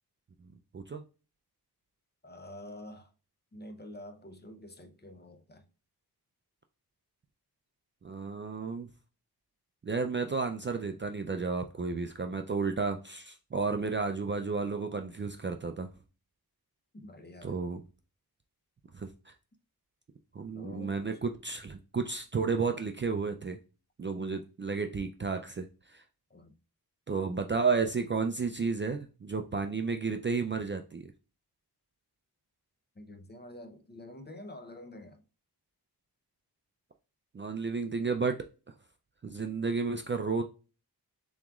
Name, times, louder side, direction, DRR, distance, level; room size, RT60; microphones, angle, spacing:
voice 1, 2.2-3.1 3.5-5.7 16.9-17.6 20.6-21.0 24.2-24.5 26.3-26.6 33.0-35.2, left 1 dB, 25° left, 0.7 m, -47 dB
voice 2, 8.0-8.9 9.8-15.9 17.4-17.8 18.9-19.3 20.3-23.6 24.0-26.0 27.1-31.1 37.3-38.4 39.2-40.4, right 4 dB, 30° right, 0.4 m, -32 dB
7.2 x 3.0 x 2.3 m
wide cardioid pair, 95°, 39 cm